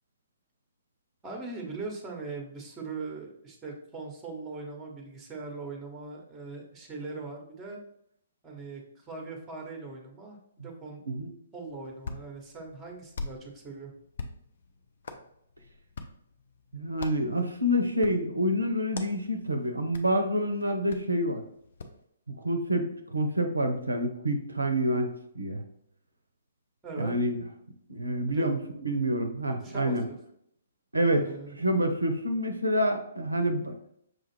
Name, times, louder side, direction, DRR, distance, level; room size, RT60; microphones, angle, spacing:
voice 1, 1.2-7.8 8.4-11.0 11.5-13.9 26.8-27.1 28.3-28.5 29.6-30.0 31.1-31.6, right 3 dB, 15° right, 2 dB, 0.9 m, -40 dB
Hands, 11.7-22.0, left 3 dB, 55° left, 0.5 m, -45 dB
voice 2, 16.7-21.4 22.4-25.6 27.0-27.4 27.9-30.1 30.9-31.3 31.6-33.8, equal, 80° right, 6 dB, 0.5 m, -27 dB
6.2 x 2.4 x 3.1 m, 0.72 s
figure-of-eight pair, 125°, 0 cm